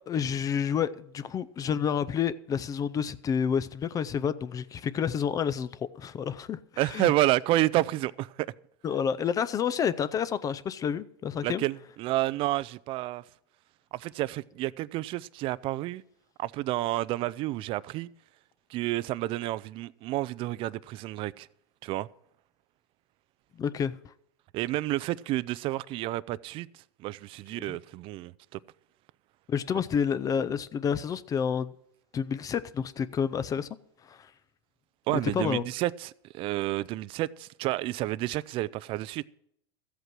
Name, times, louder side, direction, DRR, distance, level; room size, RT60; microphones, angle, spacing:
voice 1, 0.0-7.1 8.8-11.6 23.6-24.1 27.5-27.8 29.5-31.7 32.1-33.7 34.0-34.3 35.1-35.6, left 7 dB, 25° left, 0.5 m, -29 dB
voice 2, 6.8-8.5 11.4-13.2 13.9-16.0 16.4-18.1 18.7-21.5 21.8-22.1 24.5-26.7 27.0-28.6 35.1-39.2, right 16 dB, 40° right, 0.4 m, -30 dB
13.5 x 8.2 x 6.0 m
supercardioid pair, 120°, 14 cm